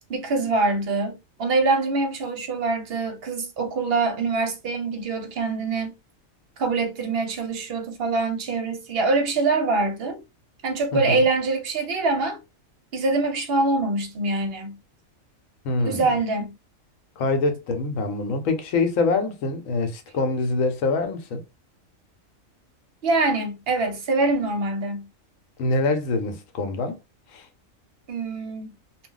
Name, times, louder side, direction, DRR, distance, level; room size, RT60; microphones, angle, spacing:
voice 1, 0.1-5.9 6.6-10.2 10.6-12.4 12.9-14.8 15.8-16.5 23.0-25.1 28.1-28.7, right 3 dB, 55° right, 0.8 m, -24 dB
voice 2, 10.9-11.2 15.6-16.2 17.2-21.4 25.6-27.0 27.3-27.5, left 3 dB, 75° left, 1.0 m, -25 dB
2.3 x 2.1 x 3.8 m
omnidirectional pair, 1.4 m